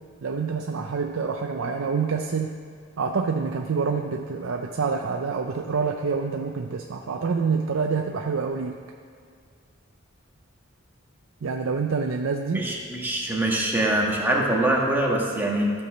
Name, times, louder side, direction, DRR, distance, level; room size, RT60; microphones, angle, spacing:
voice 1, 0.2-2.6 3.0-8.8 11.4-12.7, right 5 dB, 80° right, 3 dB, 0.5 m, -27 dB
voice 2, 12.5-15.7, right 1 dB, 10° right, -3 dB, 1.4 m, -24 dB
13.5 x 4.7 x 6.1 m, 2.1 s
head